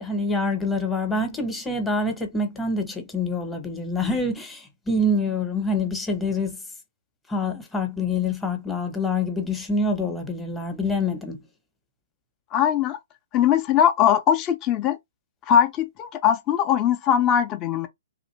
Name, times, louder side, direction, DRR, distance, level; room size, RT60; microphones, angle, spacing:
voice 1, 0.0-6.6 7.3-11.4, left 2 dB, 10° left, 0.8 m, -26 dB
voice 2, 12.5-13.0 13.3-15.0 15.5-17.9, left 9 dB, 25° left, 0.5 m, -20 dB
2.8 x 2.5 x 3.1 m
hypercardioid pair, 140°, 0 cm